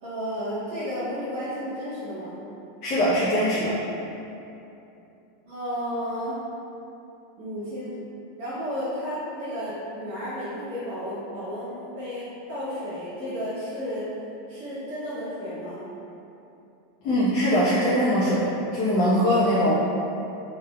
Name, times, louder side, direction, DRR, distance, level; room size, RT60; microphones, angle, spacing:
voice 1, 0.0-2.4 5.5-6.4 7.4-7.9 8.4-14.1 14.5-15.9, equal, 60° right, -12 dB, 1.1 m, -32 dB
voice 2, 2.8-3.7 17.0-19.8, equal, 40° left, -10 dB, 0.6 m, -22 dB
3.5 x 2.3 x 2.2 m, 2.8 s
supercardioid pair, 160°, 0 cm